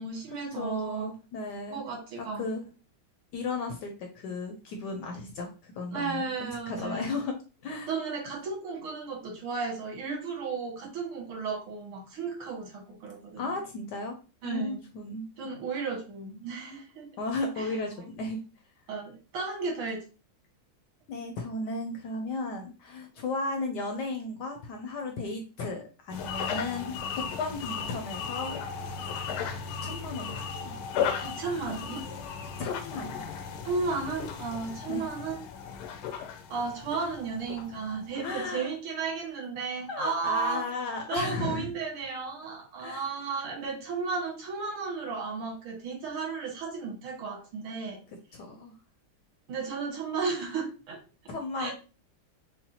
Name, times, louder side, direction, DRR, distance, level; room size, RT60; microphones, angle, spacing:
voice 1, 0.0-1.1 1.7-2.5 5.9-7.2 7.9-13.5 14.4-14.8 15.4-17.1 17.6-17.7 18.9-20.0 31.2-32.0 33.6-35.4 36.5-40.7 41.1-48.0 49.5-51.0 51.6-51.7, right 4 dB, 90° right, -1 dB, 2.3 m, -34 dB
voice 2, 0.5-1.8 2.2-2.6 3.3-6.3 6.7-7.4 7.6-7.9 13.4-14.1 14.4-15.2 17.2-18.4 21.1-28.6 29.0-29.4 29.8-30.7 32.1-32.2 32.6-33.2 34.9-35.0 38.2-38.7 39.9-41.7 42.8-43.0 48.3-48.7 51.3-51.7, left 3 dB, 70° left, 4 dB, 1.0 m, -35 dB
sound 1, 26.1-38.5, left 7 dB, 90° left, 1.5 m, -36 dB
5.7 x 2.1 x 2.8 m, 0.34 s
omnidirectional pair, 2.3 m